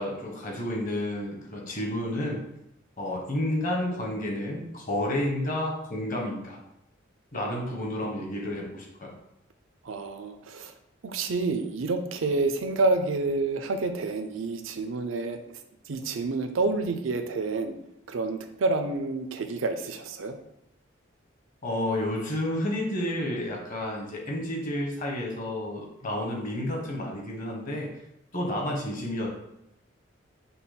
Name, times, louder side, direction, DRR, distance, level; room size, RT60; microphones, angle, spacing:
voice 1, 0.0-2.4 3.0-6.6 7.3-9.1 21.6-27.9 28.3-29.3, left 1 dB, 45° left, -1 dB, 1.1 m, -30 dB
voice 2, 9.8-10.7 11.0-15.4 15.9-17.8 18.1-20.4, right 3 dB, 85° right, 7 dB, 0.5 m, -28 dB
5.4 x 2.3 x 4.2 m, 0.84 s
head